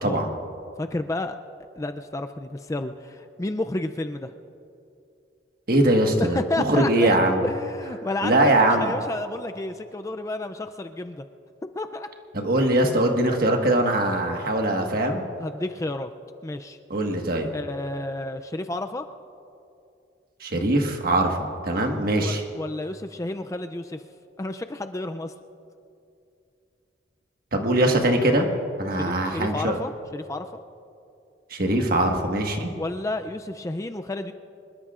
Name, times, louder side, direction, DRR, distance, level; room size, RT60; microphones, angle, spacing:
voice 1, 0.0-0.3 5.7-7.4 8.2-8.9 12.3-15.2 16.9-17.5 20.4-21.4 21.6-22.4 27.5-28.5 28.8-29.8 31.5-32.7, right 1 dB, 50° right, 3 dB, 1.5 m, -22 dB
voice 2, 0.8-1.4 1.8-4.3 6.2-7.2 7.4-11.2 11.8-12.1 15.4-16.1 16.4-16.8 17.5-19.1 22.2-24.0 24.4-25.3 28.9-30.6 32.8-34.3, left 2 dB, 15° left, 8 dB, 0.4 m, -31 dB
25.0 x 21.0 x 2.5 m, 2.6 s
head